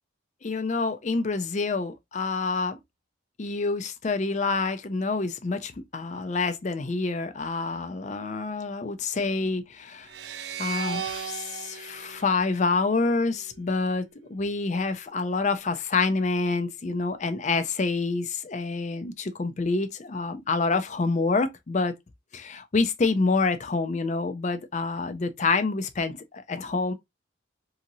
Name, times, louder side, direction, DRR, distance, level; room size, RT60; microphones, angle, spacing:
voice 1, 0.4-2.8 3.4-10.1 10.6-22.0 22.3-26.2 26.5-26.9, left 3 dB, 35° left, 0.4 m, -27 dB
sound 1, 10.1-13.4, right 8 dB, 55° right, 0.4 m, -37 dB
2.8 x 2.6 x 2.6 m
head